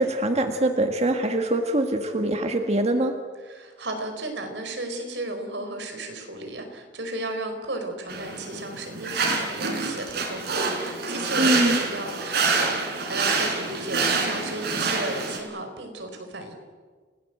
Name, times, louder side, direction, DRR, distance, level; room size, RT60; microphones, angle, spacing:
voice 1, 0.0-3.2 11.4-11.8, right 1 dB, 40° right, 5 dB, 1.7 m, -23 dB
voice 2, 3.5-12.7 13.0-16.5, right 2 dB, 90° right, 5 dB, 4.8 m, -34 dB
sound 1, 8.1-15.4, right 4 dB, 65° right, 4.8 m, -27 dB
29.5 x 18.5 x 8.1 m, 1.5 s
head